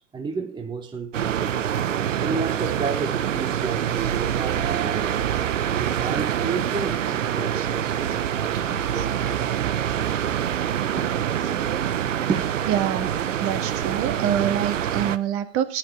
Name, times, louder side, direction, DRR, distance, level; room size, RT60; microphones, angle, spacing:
voice 1, 0.0-1.7 2.2-5.2 5.7-9.4 10.8-11.3 12.3-12.6, right 5 dB, 10° right, 1.2 m, -32 dB
sound 1, 1.1-15.2, right 9 dB, 80° right, 1.3 m, -25 dB
voice 2, 12.7-13.1 13.4-15.8, right 10 dB, 35° right, 2.1 m, -26 dB
15.0 x 10.0 x 4.7 m
hypercardioid pair, 120°, 38 cm